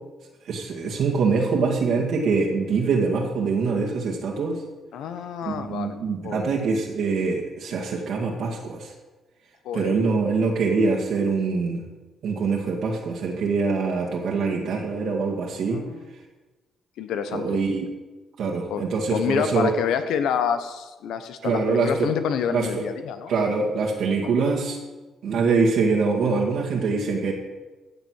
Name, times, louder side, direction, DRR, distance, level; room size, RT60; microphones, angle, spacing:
voice 1, 0.5-4.6 5.5-8.9 9.7-11.8 12.2-15.8 17.3-17.8 18.4-19.7 21.4-22.1 22.5-22.9 23.3-24.8 25.2-27.3, right 4 dB, 70° right, -2 dB, 2.1 m, -24 dB
voice 2, 4.9-6.0 6.2-6.5 9.6-9.9 15.7-16.1 17.0-17.6 18.7-23.3, left 8 dB, 85° left, 10 dB, 1.1 m, -28 dB
15.5 x 6.9 x 6.4 m, 1.2 s
cardioid pair, 90°, 0 cm